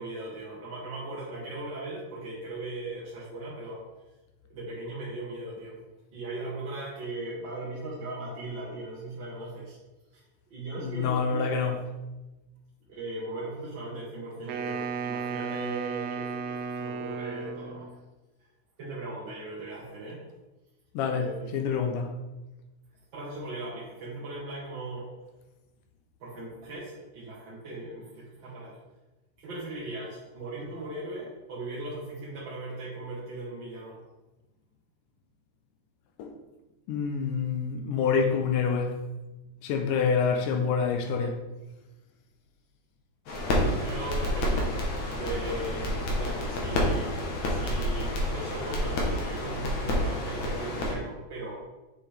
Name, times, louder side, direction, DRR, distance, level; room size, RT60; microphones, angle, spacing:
voice 1, 0.0-3.8 4.5-5.8 6.1-9.8 10.5-11.8 12.9-17.9 18.8-20.2 21.1-21.8 23.1-25.1 26.2-28.8 29.4-34.0 43.4-44.7 45.1-47.1 47.4-51.5, right 2 dB, 50° right, -7 dB, 1.5 m, -38 dB
voice 2, 10.8-11.8 20.9-22.1 36.2-36.3 36.9-39.0 39.6-41.4, left 6 dB, 80° left, 4 dB, 2.3 m, -27 dB
Wind instrument woodwind instrument, 14.5-17.9, right 5 dB, 85° right, 1.5 m, -34 dB
sound 1, 43.3-50.9, left 1 dB, 65° left, 2.5 m, -29 dB
7.1 x 6.2 x 3.5 m, 1.1 s
omnidirectional pair, 3.7 m